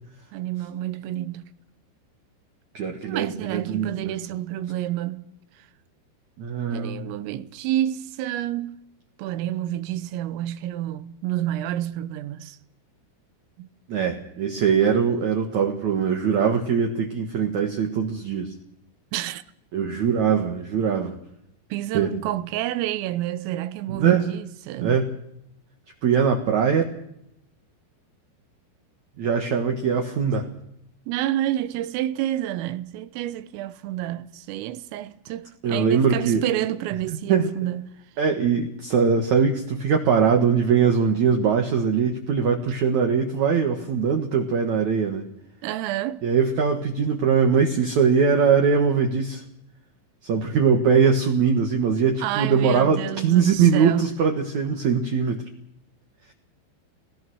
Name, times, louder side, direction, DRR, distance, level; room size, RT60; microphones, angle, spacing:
voice 1, 0.3-1.4 3.0-5.3 6.7-8.7 9.2-12.6 13.6-13.7 19.1-19.4 21.7-25.0 31.1-37.9 45.6-46.2 52.2-54.3, right 13 dB, 85° right, 3.6 m, -29 dB
voice 2, 2.7-4.2 6.4-7.0 13.9-18.5 19.7-21.2 21.9-22.1 23.9-24.3 24.8-25.1 26.0-26.8 29.2-30.5 35.6-36.4 37.3-37.5 38.2-45.2 46.2-49.4 50.2-55.4, right 6 dB, 65° right, 1.9 m, -21 dB
22.5 x 19.5 x 6.3 m
omnidirectional pair, 5.8 m